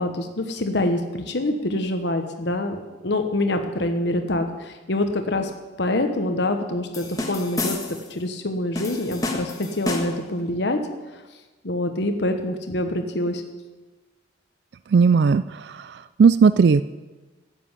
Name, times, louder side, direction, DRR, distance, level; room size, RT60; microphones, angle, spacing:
voice 1, 0.0-5.5 5.8-10.8 11.1-11.2 11.6-13.4, left 1 dB, 65° left, 6 dB, 1.1 m, -25 dB
sound 1, 6.9-8.1 8.8-10.3, left 2 dB, 20° left, 1.6 m, -30 dB
voice 2, 14.9-15.4 15.7-15.8 16.2-16.8, right 5 dB, 60° right, 14 dB, 0.3 m, -15 dB
12.5 x 7.7 x 9.6 m, 1.2 s
head